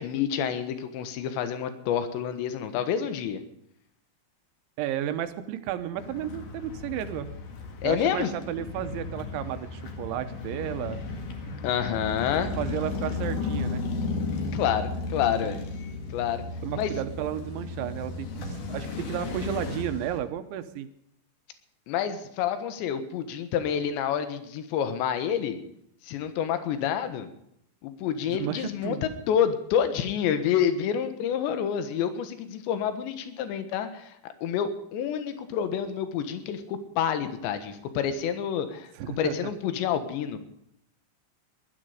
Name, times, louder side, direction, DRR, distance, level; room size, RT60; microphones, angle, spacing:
voice 1, 0.0-3.4 7.8-8.3 11.6-12.5 14.5-15.6 16.1-16.4 16.7-16.9 21.9-25.6 26.0-27.3 27.8-38.9 39.2-40.4, left 8 dB, 70° left, 10 dB, 3.4 m, -28 dB
voice 2, 4.8-7.3 7.8-11.0 12.6-13.8 16.6-20.9 28.3-29.0 39.0-39.3, right 11 dB, 75° right, 10 dB, 3.1 m, -33 dB
sound 1, 6.0-20.2, left 3 dB, 55° left, 2.8 m, -34 dB
19.5 x 12.5 x 5.1 m, 0.75 s
omnidirectional pair, 5.7 m